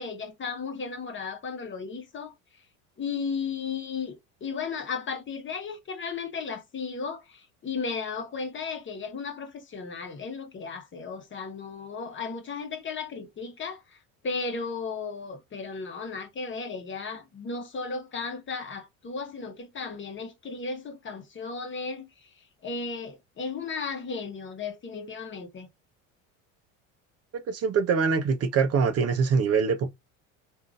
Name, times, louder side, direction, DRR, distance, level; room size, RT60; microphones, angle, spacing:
voice 1, 0.0-2.3 3.0-14.0 14.2-22.3 22.6-25.7, left 5 dB, 30° left, 1.1 m, -35 dB
voice 2, 27.5-29.9, right 5 dB, 40° right, 0.7 m, -24 dB
3.6 x 2.7 x 2.3 m
supercardioid pair, 90°, 38 cm